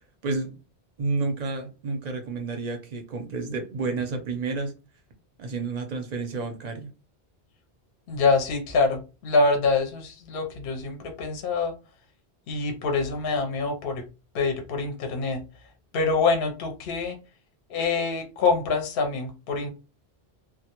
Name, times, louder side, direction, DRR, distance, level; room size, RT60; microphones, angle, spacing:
voice 1, 1.0-4.7 5.4-6.9, right 3 dB, 50° right, 0.5 m, -30 dB
voice 2, 8.1-11.7 12.5-14.0 14.3-15.4 15.9-17.2 17.7-19.7, left 4 dB, 65° left, 0.7 m, -25 dB
2.1 x 2.1 x 2.8 m
omnidirectional pair, 1.1 m